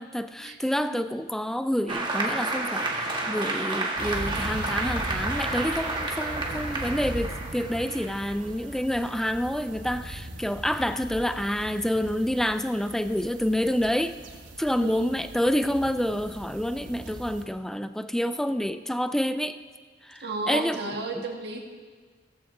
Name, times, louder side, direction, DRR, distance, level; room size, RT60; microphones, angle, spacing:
voice 1, 0.0-14.2 14.6-19.6 20.0-21.0, equal, ahead, 11 dB, 0.3 m, -28 dB
Applause, 1.9-9.1, right 2 dB, 25° right, 1.4 m, -31 dB
sound 1, 4.0-17.4, right 1 dB, 75° right, 1.2 m, -39 dB
voice 2, 14.7-15.1 20.2-21.6, right 3 dB, 60° right, 1 dB, 1.5 m, -33 dB
15.5 x 14.5 x 2.6 m, 1.5 s
head